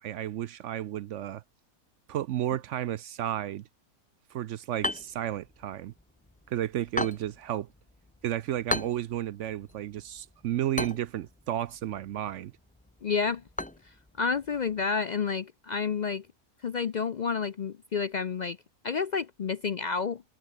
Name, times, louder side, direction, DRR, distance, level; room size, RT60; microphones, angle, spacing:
voice 1, 0.0-1.4 2.1-3.7 4.3-5.9 6.5-7.7 8.2-12.5, right 12 dB, 65° right, 0.8 m, -32 dB
sound 1, 4.7-14.8, left 1 dB, 10° left, 0.5 m, -39 dB
voice 2, 13.0-13.4 13.8-16.3 16.6-18.6 18.8-20.2, left 5 dB, 75° left, 0.4 m, -30 dB
open air
omnidirectional pair, 1.5 m